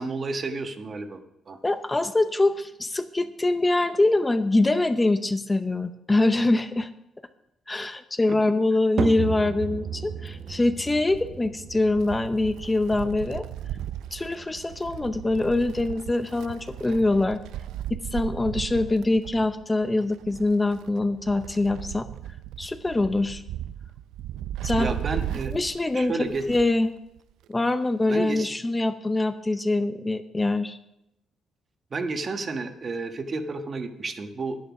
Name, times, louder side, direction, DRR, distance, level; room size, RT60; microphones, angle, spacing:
voice 1, 0.0-1.6 24.8-25.5 25.9-26.4 28.1-28.5 31.9-34.6, right 3 dB, 40° right, 7 dB, 1.3 m, -31 dB
voice 2, 1.6-6.9 7.7-13.5 14.1-17.4 17.9-22.1 22.6-23.4 24.6-24.9 25.5-26.9 27.5-30.8, left 2 dB, 20° left, 10 dB, 0.6 m, -24 dB
sound 1, 9.0-25.4, right 6 dB, 55° right, 0.9 m, -38 dB
Wind, 10.3-26.9 27.2-27.3 28.3-28.4, right 12 dB, 85° right, 0.4 m, -36 dB
10.5 x 9.2 x 6.0 m, 0.85 s
cardioid pair, 90°, 0 cm